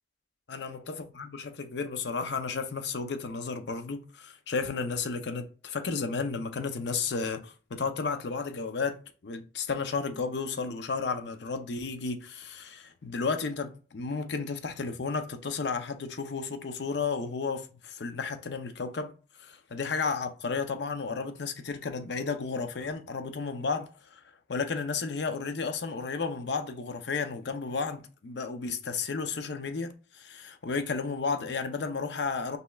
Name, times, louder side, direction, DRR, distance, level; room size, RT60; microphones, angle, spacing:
voice 1, 0.5-19.1 19.4-24.2 24.5-32.6, left 4 dB, 65° left, 0.6 m, -33 dB
5.4 x 3.0 x 2.3 m
head